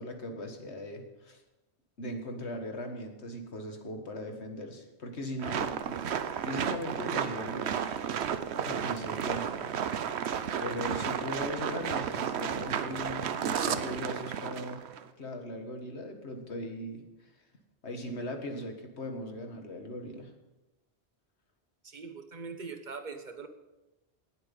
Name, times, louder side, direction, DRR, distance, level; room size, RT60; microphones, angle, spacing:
voice 1, 0.0-1.4 2.0-8.0 8.6-9.6 10.6-14.8 15.2-17.3 17.8-20.3, left 1 dB, 80° left, 4 dB, 1.9 m, -39 dB
sound 1, 5.4-15.0, right 8 dB, 75° right, 1.0 m, -33 dB
voice 2, 21.8-23.5, right 4 dB, 45° right, 7 dB, 1.3 m, -42 dB
18.5 x 7.9 x 5.4 m, 1.0 s
omnidirectional pair, 1.1 m